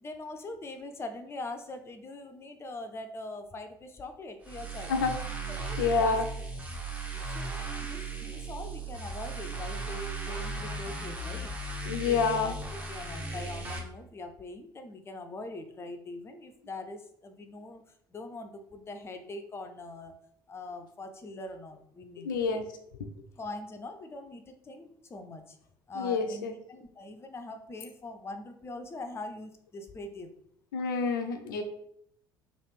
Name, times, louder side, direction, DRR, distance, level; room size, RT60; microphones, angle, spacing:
voice 1, 0.0-4.9 5.6-6.2 7.2-11.6 12.1-12.5 12.9-17.8 18.1-20.1 20.5-22.6 23.4-25.6 25.9-30.3, left 2 dB, 25° left, 7 dB, 0.5 m, -42 dB
sound 1, 4.4-13.8, right 3 dB, 10° right, 0.8 m, -37 dB
voice 2, 5.8-6.2 11.8-12.5 22.2-22.6 25.9-26.5 30.7-31.6, left 4 dB, 70° left, 6 dB, 0.5 m, -28 dB
3.2 x 2.5 x 3.1 m, 0.70 s
figure-of-eight pair, 55°, 11 cm